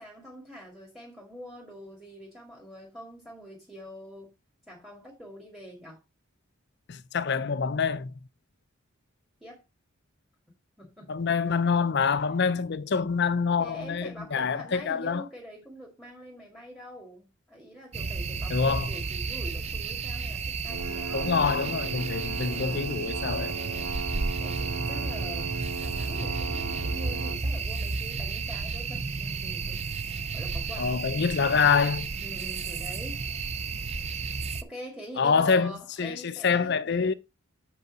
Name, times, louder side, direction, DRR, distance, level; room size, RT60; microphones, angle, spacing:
voice 1, 0.0-4.3 4.7-6.0 9.4-9.6 10.8-11.1 13.6-21.8 22.4-22.9 23.4-23.9 24.4-29.9 30.3-31.0 32.2-33.2 34.6-37.1, equal, ahead, 1.9 m, -45 dB
voice 2, 6.9-8.1 11.1-15.2 18.5-18.9 21.1-23.5 30.8-32.1 35.2-35.7 36.0-37.1, left 5 dB, 50° left, 0.5 m, -26 dB
sound 1, 17.9-34.6, right 4 dB, 30° right, 0.5 m, -32 dB
sound 2, 20.7-27.4, right 3 dB, 75° right, 1.1 m, -37 dB
7.0 x 5.4 x 5.0 m
head